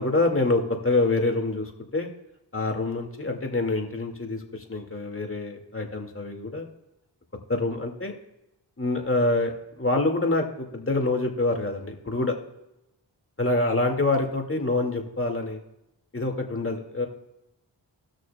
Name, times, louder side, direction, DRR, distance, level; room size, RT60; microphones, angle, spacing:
voice 1, 0.0-2.1 2.5-6.7 7.5-8.2 8.8-12.3 13.4-15.6 16.1-17.1, left 2 dB, 30° left, 3 dB, 2.1 m, -26 dB
18.5 x 6.4 x 2.3 m, 0.89 s
cardioid pair, 40°, 44 cm